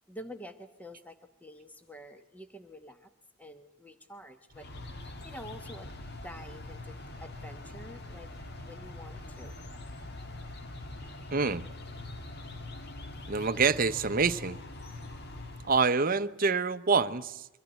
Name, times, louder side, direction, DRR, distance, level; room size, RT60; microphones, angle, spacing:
voice 1, 0.1-3.1 3.4-4.7 5.2-5.9 6.2-9.6, equal, 5° left, 0.9 m, -48 dB
sound 1, 4.5-15.9, left 2 dB, 50° left, 1.8 m, -43 dB
voice 2, 11.3-11.6 13.3-14.6 15.6-17.5, right 4 dB, 40° right, 0.7 m, -26 dB
23.5 x 15.0 x 8.9 m
head